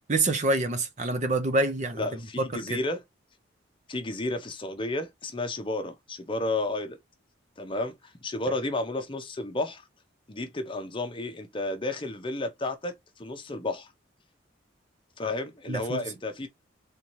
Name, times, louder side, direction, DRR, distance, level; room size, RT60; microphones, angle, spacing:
voice 1, 0.1-2.8 15.7-16.0, right 2 dB, 35° right, 0.6 m, -27 dB
voice 2, 2.0-3.0 3.9-7.0 7.6-9.8 10.3-13.9 15.2-16.5, left 2 dB, 25° left, 0.7 m, -32 dB
3.6 x 2.8 x 3.0 m
head